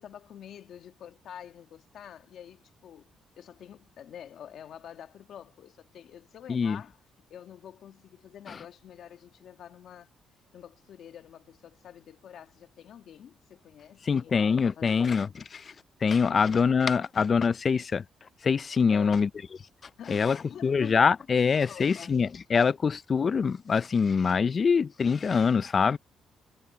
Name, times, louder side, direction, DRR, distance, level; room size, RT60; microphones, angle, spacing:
voice 1, 0.0-7.0 7.3-10.1 10.5-15.2 16.3-16.7 18.9-19.3 20.0-21.2 21.7-22.2, left 9 dB, 70° left, 1.6 m, -47 dB
voice 2, 6.5-6.8 8.5-8.6 14.0-15.7 16.0-18.0 18.4-19.3 20.1-20.4 20.6-26.0, left 5 dB, 40° left, 0.4 m, -24 dB
cardioid pair, 90°, 0 cm